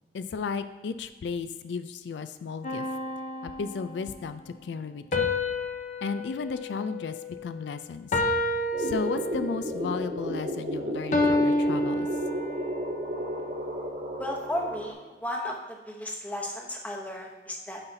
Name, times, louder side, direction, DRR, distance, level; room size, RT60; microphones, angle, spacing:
voice 1, 0.1-3.0 3.4-5.3 6.0-7.2 7.4-8.2 8.8-12.1, left 5 dB, 85° left, 11 dB, 0.3 m, -34 dB
sound 1, 2.6-4.1 5.1-7.6 8.1-9.7 11.1-12.8, left 2 dB, 40° left, 0.6 m, -29 dB
sound 2, 8.7-14.9, equal, 45° right, 1.2 m, -33 dB
voice 2, 14.2-17.8, left 1 dB, 10° left, 0 dB, 0.8 m, -34 dB
9.7 x 5.6 x 2.7 m, 1.2 s
head